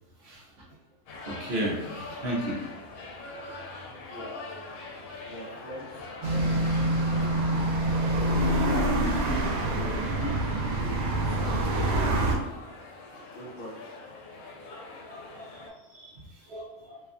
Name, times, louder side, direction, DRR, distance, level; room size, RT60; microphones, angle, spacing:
sound 1, 1.1-15.7, left 3 dB, 85° left, 1.0 m, -43 dB
voice 1, 1.2-2.6 14.6-16.2 16.5-17.0, right 1 dB, 60° right, -4 dB, 0.8 m, -35 dB
voice 2, 3.9-4.6 5.2-5.9 6.2-7.3 8.6-10.4 10.7-11.6 11.9-12.5 13.3-13.8, left 1 dB, 60° left, -2 dB, 0.6 m, -42 dB
sound 2, 6.2-12.4, right 1 dB, 85° right, 1.0 m, -26 dB
2.7 x 2.2 x 2.4 m, 1.0 s
omnidirectional pair, 1.4 m